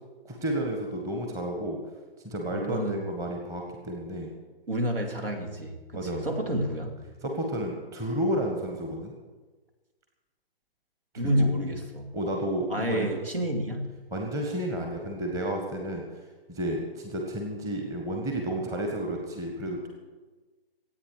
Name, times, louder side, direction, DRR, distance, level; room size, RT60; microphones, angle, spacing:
voice 1, 0.2-1.8 2.2-4.3 5.9-6.6 7.2-9.1 11.1-11.5 12.1-13.1 14.1-16.0 16.5-19.9, right 1 dB, 10° right, 1 dB, 1.5 m, -31 dB
voice 2, 2.5-3.0 4.7-6.9 11.2-12.1 12.7-14.0, equal, 65° right, 5 dB, 2.7 m, -29 dB
26.0 x 8.7 x 4.9 m, 1.3 s
figure-of-eight pair, 135°, 30 cm